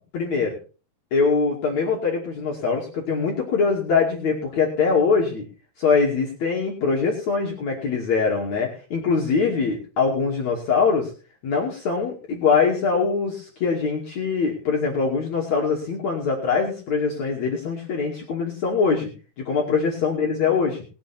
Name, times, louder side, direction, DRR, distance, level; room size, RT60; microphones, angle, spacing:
voice 1, 0.1-0.6 1.1-5.4 5.8-11.1 11.4-19.1 19.4-20.8, left 5 dB, 50° left, -2 dB, 3.6 m, -23 dB
20.5 x 7.6 x 4.4 m, 0.36 s
omnidirectional pair, 4.2 m